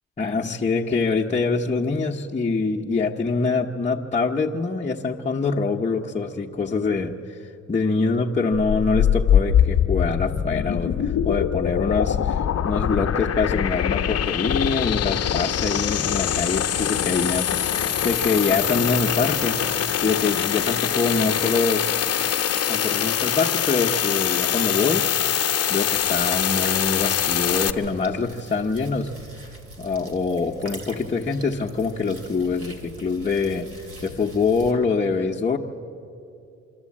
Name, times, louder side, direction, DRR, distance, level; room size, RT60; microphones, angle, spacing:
voice 1, 0.2-19.6 20.0-21.8 22.7-25.1 25.7-29.1 29.8-35.6, left 4 dB, 25° left, -2 dB, 1.0 m, -24 dB
sound 1, 8.5-27.7, left 9 dB, 55° left, 1.0 m, -23 dB
sound 2, 17.4-23.4, equal, 85° right, 3.4 m, -43 dB
sound 3, 25.9-34.7, right 2 dB, 50° right, 2.5 m, -43 dB
25.5 x 12.5 x 8.6 m, 2.7 s
cardioid pair, 90°, 30 cm